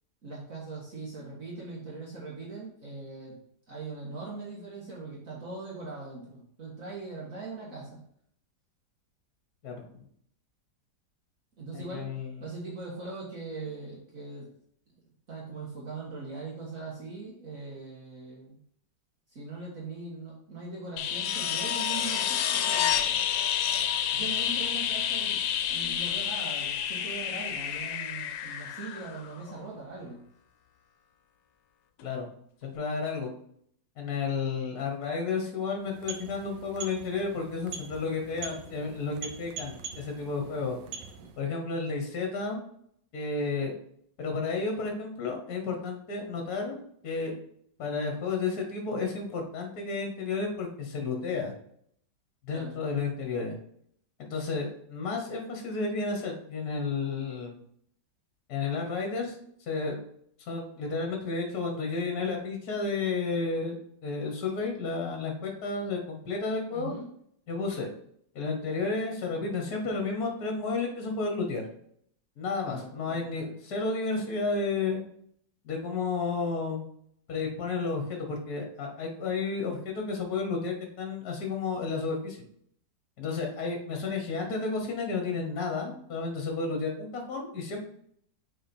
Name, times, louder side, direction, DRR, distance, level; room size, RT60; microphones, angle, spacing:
voice 1, 0.2-3.4 3.7-8.0 11.6-12.1 12.4-14.5 15.3-18.6 19.3-23.1 24.1-30.2 41.2-41.3 52.5-52.8 66.7-67.1 72.7-73.3, right 3 dB, 50° right, -5 dB, 1.8 m, -41 dB
voice 2, 9.6-10.0 11.7-12.4 32.0-32.3 32.6-33.3 34.0-40.8 41.4-42.6 43.1-43.7 44.2-46.8 47.0-47.3 47.8-51.5 52.4-53.6 54.2-57.6 58.5-59.4 59.7-60.0 60.5-66.9 67.5-67.9 68.4-71.7 72.4-75.0 75.7-76.9 77.3-82.4 83.2-87.8, left 4 dB, 60° left, 3 dB, 1.6 m, -32 dB
sound 1, 21.0-29.6 32.0-32.1, left 9 dB, 90° left, 1.3 m, -29 dB
sound 2, 35.7-41.5, right 6 dB, 85° right, 1.4 m, -43 dB
6.4 x 4.1 x 4.3 m, 0.67 s
omnidirectional pair, 1.9 m